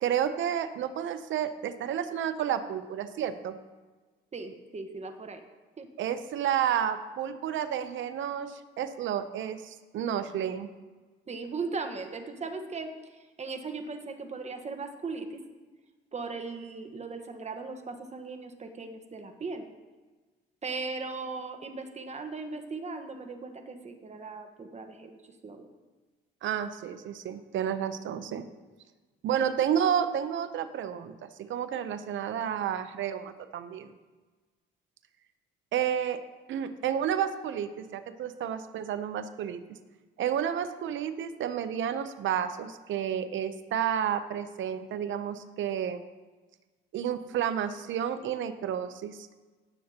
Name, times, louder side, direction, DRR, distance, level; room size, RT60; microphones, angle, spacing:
voice 1, 0.0-3.6 6.0-10.7 26.4-28.5 29.2-33.9 35.7-36.2 36.5-39.8 40.2-46.0 46.9-49.3, right 9 dB, 75° right, 10 dB, 0.8 m, -31 dB
voice 2, 4.3-5.4 5.8-5.9 11.3-15.4 16.1-19.6 20.6-25.7, right 4 dB, 35° right, 6 dB, 1.3 m, -38 dB
17.0 x 7.9 x 2.9 m, 1.3 s
cardioid pair, 90°, 20 cm